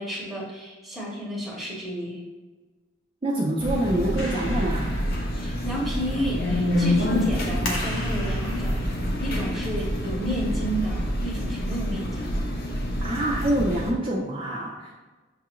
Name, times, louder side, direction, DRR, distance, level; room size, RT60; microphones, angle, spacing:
voice 1, 0.0-2.2 5.3-8.8 9.2-12.5, equal, ahead, -4 dB, 0.9 m, -31 dB
voice 2, 3.2-4.9 13.0-14.9, right 1 dB, 25° right, -4 dB, 0.4 m, -26 dB
sound 1, 3.6-13.9, equal, 50° left, 0.6 m, -27 dB
Clapping, 4.1-10.9, left 1 dB, 80° left, 0.8 m, -39 dB
6.4 x 2.4 x 3.0 m, 1.3 s
head